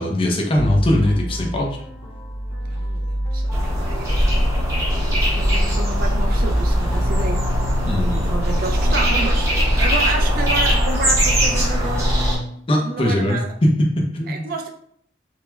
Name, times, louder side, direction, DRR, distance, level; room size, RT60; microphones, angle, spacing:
voice 1, 0.0-1.8 7.9-8.2 12.7-14.4, left 1 dB, 30° left, 0 dB, 0.5 m, -20 dB
sound 1, 0.6-12.3, equal, 90° left, 1.2 m, -26 dB
voice 2, 2.7-7.6 8.3-13.5 14.3-14.7, right 3 dB, 55° right, 4 dB, 0.4 m, -30 dB
sound 2, 3.5-12.4, equal, 15° right, 0.8 m, -20 dB
3.1 x 2.1 x 2.2 m, 0.65 s
head